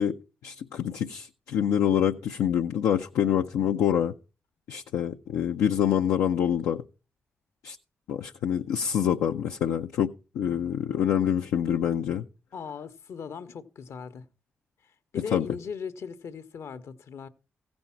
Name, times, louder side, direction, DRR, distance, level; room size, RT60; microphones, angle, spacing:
voice 1, 0.0-4.1 4.7-6.8 7.6-7.8 8.1-12.2 15.3-15.5, left 9 dB, 90° left, 0.4 m, -26 dB
voice 2, 12.5-14.3 15.1-17.3, left 6 dB, 70° left, 0.9 m, -38 dB
15.5 x 5.2 x 5.7 m
supercardioid pair, 55°, 5 cm